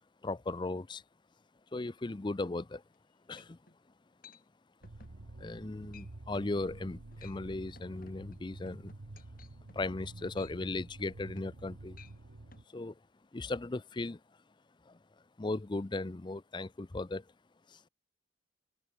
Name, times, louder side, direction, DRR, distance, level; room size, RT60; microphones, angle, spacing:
voice 1, 0.2-1.0 1.7-2.8 3.3-3.6 5.4-8.9 9.7-12.0 12.7-12.9 13.3-14.2 14.9-15.0 15.4-17.2 17.7-17.8, left 2 dB, 25° left, 0.5 m, -37 dB
sound 1, 2.9-3.0 3.4-3.8 4.2-4.4 4.8-5.2 5.5-5.7 5.9-6.1 6.3-6.6 7.0-7.4 7.8-11.6 11.9-12.2 12.5-12.6, left 6 dB, 45° left, 2.7 m, -57 dB
sound 2, 4.8-12.6, right 2 dB, 85° right, 1.2 m, -50 dB
head